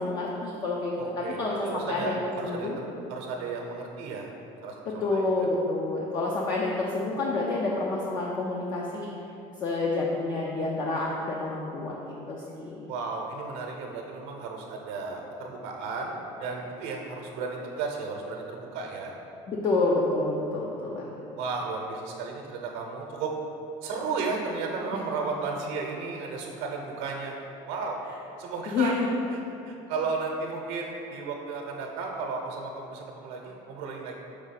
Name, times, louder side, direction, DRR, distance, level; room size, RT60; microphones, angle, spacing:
voice 1, 0.0-2.8 4.9-9.1 9.6-12.8 19.5-21.1 28.7-29.1, left 3 dB, 35° left, -3 dB, 0.5 m, -28 dB
voice 2, 1.0-4.3 4.6-5.5 12.9-19.1 21.4-23.3 23.8-27.3 27.7-28.1 28.4-28.9 29.6-34.2, right 4 dB, 75° right, 0 dB, 0.7 m, -34 dB
5.0 x 3.6 x 5.7 m, 2.9 s
cardioid pair, 160°, 13 cm